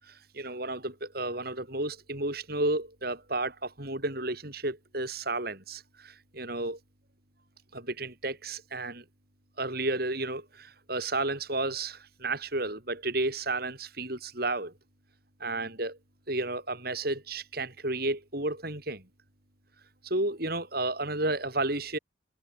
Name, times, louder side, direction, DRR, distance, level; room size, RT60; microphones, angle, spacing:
voice 1, 0.3-6.8 7.7-9.0 9.6-14.7 15.4-16.0 16.3-19.0 20.0-22.0, right 2 dB, 50° right, 5.9 m, -32 dB
head